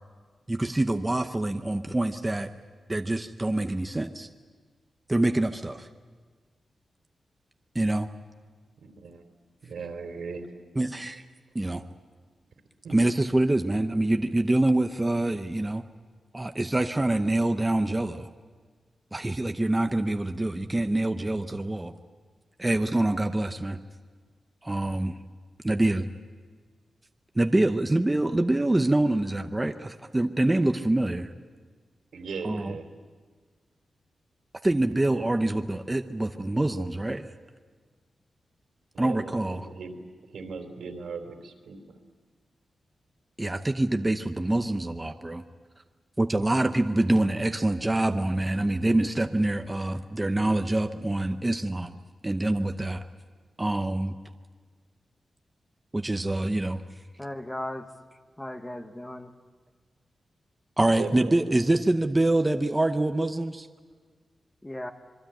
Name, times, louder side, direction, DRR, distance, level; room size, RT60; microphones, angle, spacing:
voice 1, 0.5-2.5 2.9-4.3 5.1-5.9 7.7-8.1 10.8-11.2 11.5-11.8 12.9-15.8 16.3-18.3 19.1-21.9 22.6-23.8 24.6-25.1 25.6-26.1 27.3-31.3 32.4-32.7 34.6-37.3 39.0-39.7 43.4-45.4 46.2-51.9 52.2-53.1 53.6-54.1 55.9-56.8 60.8-63.7, right 1 dB, 15° right, 6 dB, 0.8 m, -25 dB
voice 2, 8.8-9.2 9.6-10.5 12.8-13.1 32.1-32.9 35.1-35.5 38.9-40.0 40.3-42.0 46.6-46.7 60.9-61.3, right 4 dB, 85° right, 5 dB, 3.5 m, -38 dB
voice 3, 57.2-57.9 58.4-59.3 64.6-64.9, left 1 dB, 10° left, 7 dB, 1.1 m, -36 dB
26.0 x 22.5 x 9.0 m, 1.5 s
wide cardioid pair, 160°, 0 cm